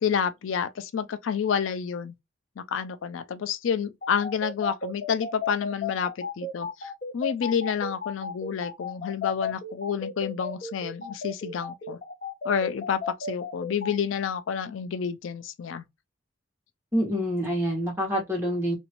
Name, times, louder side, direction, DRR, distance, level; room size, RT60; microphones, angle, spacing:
voice 1, 0.0-2.1 2.6-12.0 12.4-15.8, left 7 dB, 85° left, 0.4 m, -29 dB
sound 1, 4.0-13.9, left 4 dB, 50° left, 0.9 m, -34 dB
voice 2, 16.9-18.7, equal, 15° right, 1.5 m, -26 dB
2.9 x 2.6 x 2.9 m
head